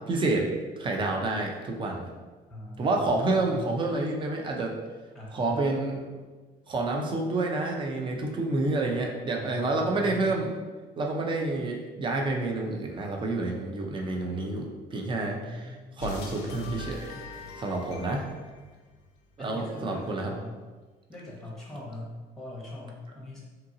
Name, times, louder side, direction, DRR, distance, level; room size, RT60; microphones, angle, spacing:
voice 1, 0.1-0.5 0.8-2.0 2.8-4.8 5.3-6.2 6.7-10.5 11.0-15.7 16.0-17.2 17.6-18.2 19.4-20.3, right 2 dB, 30° right, 1 dB, 0.5 m, -29 dB
voice 2, 2.5-3.0 3.4-3.6 5.1-5.6 9.3-10.3 15.1-16.0 19.4-20.6 21.1-23.4, left 1 dB, ahead, -5 dB, 0.9 m, -41 dB
sound 1, 16.0-19.4, left 2 dB, 85° left, 0.4 m, -41 dB
2.7 x 2.5 x 2.6 m, 1.3 s
cardioid pair, 110°, 17 cm